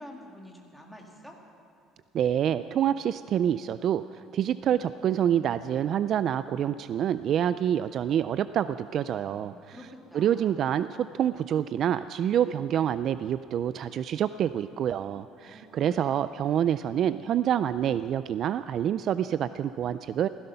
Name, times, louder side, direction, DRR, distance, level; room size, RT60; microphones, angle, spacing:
voice 1, 0.0-1.4 9.3-10.8 15.4-16.2, equal, ahead, -1 dB, 2.1 m, -48 dB
voice 2, 2.1-4.0 4.3-9.8 10.1-20.3, right 10 dB, 45° right, 13 dB, 0.3 m, -27 dB
16.5 x 16.0 x 5.7 m, 2.4 s
cardioid pair, 160°, 0 cm